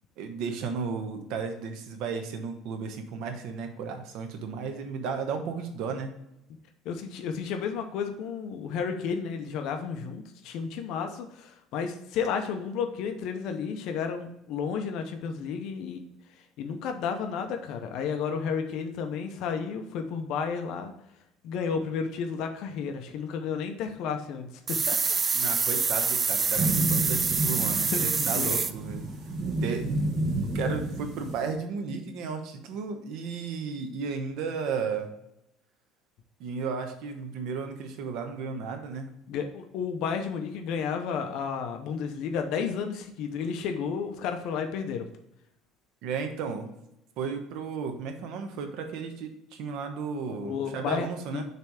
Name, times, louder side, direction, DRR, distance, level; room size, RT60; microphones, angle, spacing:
voice 1, 0.2-6.2 25.3-29.1 29.6-29.9 30.5-35.1 36.4-39.1 46.0-46.7 47.2-51.4, right 5 dB, 60° right, 5 dB, 1.1 m, -34 dB
voice 2, 6.8-16.0 16.4-20.9 21.4-25.0 27.9-28.5 39.3-45.1 50.3-51.1 51.3-51.4, left 6 dB, 60° left, 5 dB, 0.7 m, -32 dB
sound 1, 24.7-28.7, right 5 dB, 20° right, 0.3 m, -26 dB
sound 2, 26.5-31.5, right 1 dB, 35° right, 1.4 m, -30 dB
6.8 x 3.4 x 6.2 m, 0.82 s
cardioid pair, 160°, 0 cm